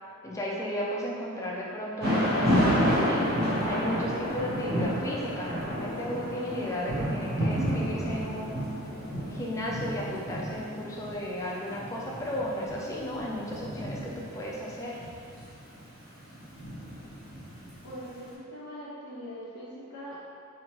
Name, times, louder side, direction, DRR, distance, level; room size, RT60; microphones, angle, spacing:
voice 1, 0.2-3.4 3.7-8.6 9.3-15.0, left 1 dB, 15° left, -4 dB, 0.4 m, -34 dB
Thunder / Rain, 2.0-18.0, equal, 45° right, 0.9 m, -30 dB
voice 2, 17.8-20.3, equal, 75° left, -10 dB, 0.6 m, -42 dB
3.6 x 2.9 x 3.0 m, 2.4 s
head